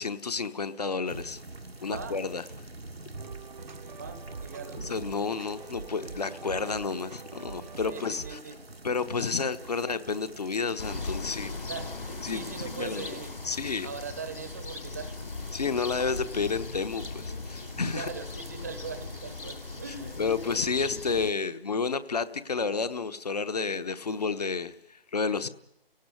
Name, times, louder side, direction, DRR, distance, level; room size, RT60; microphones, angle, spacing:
voice 1, 0.0-1.4 1.8-2.4 4.8-8.4 8.8-11.6 12.2-13.1 13.4-13.9 15.5-18.1 19.9-25.5, left 5 dB, 40° left, 1.1 m, -31 dB
sound 1, 1.1-20.5, right 2 dB, 85° right, 1.5 m, -47 dB
voice 2, 1.9-2.2 3.6-4.8 7.8-8.6 11.7-13.3 13.8-15.5 17.9-20.2, right 5 dB, 15° right, 0.9 m, -41 dB
sound 2, 3.1-8.4, right 5 dB, 50° right, 0.9 m, -44 dB
sound 3, 10.8-21.3, left 3 dB, 60° left, 2.7 m, -39 dB
29.5 x 17.5 x 9.5 m
figure-of-eight pair, 155°, 30 cm